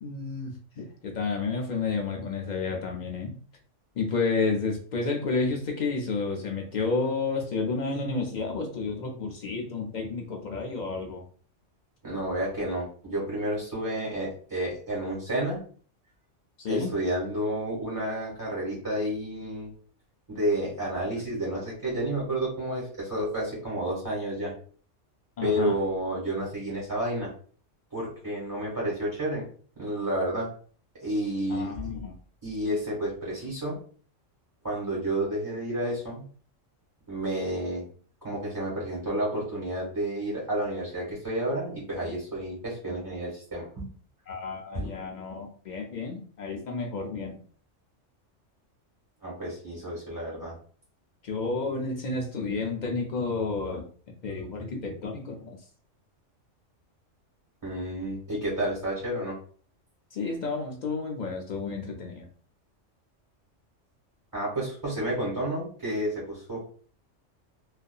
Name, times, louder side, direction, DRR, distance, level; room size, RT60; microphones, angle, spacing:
voice 1, 0.0-3.4 4.0-11.2 16.6-16.9 25.4-25.7 31.5-32.1 44.3-47.4 51.2-55.6 60.1-62.3, left 4 dB, 60° left, 1 dB, 0.4 m, -31 dB
voice 2, 12.0-15.6 16.7-19.7 20.3-24.5 25.4-27.3 27.9-29.5 29.7-30.5 31.0-31.7 32.4-33.8 34.6-36.2 37.1-37.8 38.2-43.8 44.7-44.9 49.2-50.5 57.6-59.3 64.3-66.7, right 1 dB, 15° right, -7 dB, 1.3 m, -30 dB
2.6 x 2.4 x 2.2 m, 0.44 s
omnidirectional pair, 1.3 m